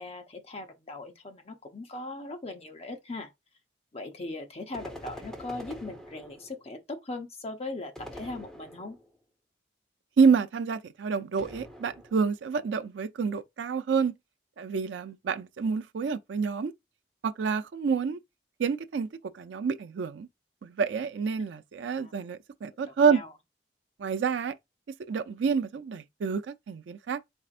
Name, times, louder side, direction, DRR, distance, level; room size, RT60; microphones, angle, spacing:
voice 1, 0.0-3.3 3.9-9.0 21.4-21.5 21.9-22.1 23.1-23.3, left 2 dB, 35° left, 0.8 m, -39 dB
sound 1, 4.7-6.7 7.9-9.2 11.4-12.4, equal, ahead, 1.1 m, -45 dB
voice 2, 10.2-14.2 14.6-16.7 17.2-18.2 18.6-19.1 19.3-20.3 20.6-23.2 24.0-24.5 25.1-27.2, right 5 dB, 85° right, 0.4 m, -28 dB
4.4 x 4.2 x 2.5 m
head